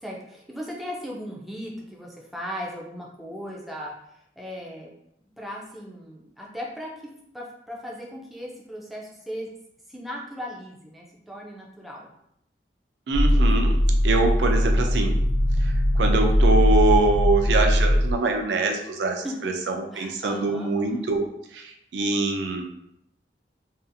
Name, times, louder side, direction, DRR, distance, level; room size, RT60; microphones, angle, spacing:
voice 1, 0.0-3.9 4.4-4.9 5.4-6.9 7.3-9.5 9.9-12.1 19.2-19.4 19.9-20.7, equal, ahead, -3 dB, 0.3 m, -37 dB
sound 1, 13.1-18.1, equal, 80° left, 0.5 m, -20 dB
voice 2, 13.1-13.8 14.0-15.2 15.6-21.3 21.5-22.7, right 3 dB, 80° right, 3 dB, 0.4 m, -24 dB
2.6 x 2.4 x 2.6 m, 0.76 s
head